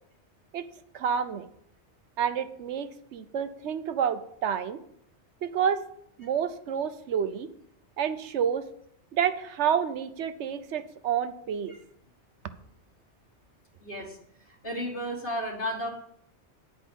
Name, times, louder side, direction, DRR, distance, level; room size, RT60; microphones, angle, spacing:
voice 1, 0.9-1.5 2.2-4.8 5.4-5.8 6.2-7.5 8.0-8.7 9.1-11.7, right 8 dB, 85° right, 11 dB, 1.0 m, -29 dB
voice 2, 13.8-14.2 14.5-15.9, equal, 55° left, -4 dB, 2.1 m, -33 dB
10.0 x 5.0 x 7.0 m, 0.70 s
omnidirectional pair, 1.1 m